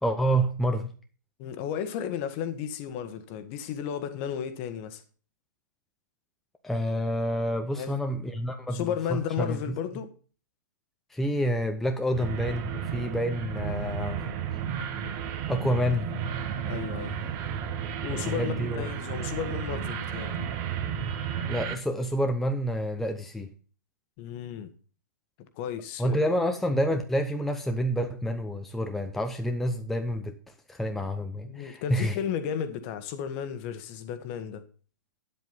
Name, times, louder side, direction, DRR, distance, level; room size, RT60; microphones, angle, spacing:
voice 1, 0.0-0.9 6.6-9.7 11.1-14.2 15.5-16.1 18.1-18.9 21.5-23.5 26.0-30.4 30.7-32.2, equal, ahead, 0.8 m, -28 dB
voice 2, 1.4-5.0 7.7-8.0 8.7-10.1 16.6-17.2 18.0-20.4 24.2-24.7 25.5-26.2 31.4-34.6, left 8 dB, 40° left, 1.4 m, -33 dB
sound 1, 12.1-21.7, right 8 dB, 35° right, 1.6 m, -33 dB
9.6 x 7.8 x 5.6 m
hypercardioid pair, 130°, 11 cm